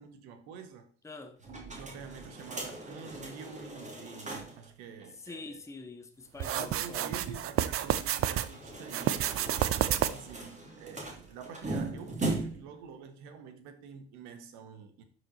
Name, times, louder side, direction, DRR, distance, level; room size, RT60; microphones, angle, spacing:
voice 1, 0.0-0.9 1.5-5.6 6.5-9.7 10.0-15.0, right 6 dB, 60° right, 1.6 m, -47 dB
voice 2, 1.0-1.4 5.2-7.1, left 3 dB, 10° left, 1.0 m, -45 dB
sound 1, 1.4-4.7 5.0-5.1 5.3-5.4 8.2-12.8, right 2 dB, 20° right, 2.8 m, -39 dB
sound 2, 6.4-8.5 8.9-10.4, right 11 dB, 45° right, 0.7 m, -30 dB
12.0 x 5.2 x 4.1 m
figure-of-eight pair, 55°, 32 cm